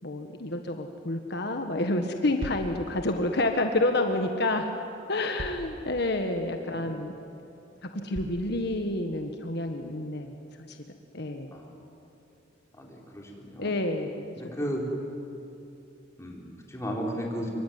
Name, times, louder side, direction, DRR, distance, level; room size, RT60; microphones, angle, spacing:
voice 1, 0.0-4.7 5.1-7.1 8.0-10.3 10.7-10.8 11.1-11.5 13.6-14.3 14.6-14.7, left 2 dB, 65° left, 5 dB, 1.6 m, -29 dB
sound 1, 2.4-2.7 4.3-4.4 5.4-5.7 6.3-6.4 7.0-7.1 8.1-8.5, right 1 dB, 75° right, 1.5 m, -38 dB
voice 2, 6.6-6.9 11.5-11.7 12.7-13.7 14.4-14.9 16.2-17.5, equal, 15° left, -1 dB, 4.7 m, -35 dB
26.0 x 24.0 x 9.6 m, 2.8 s
head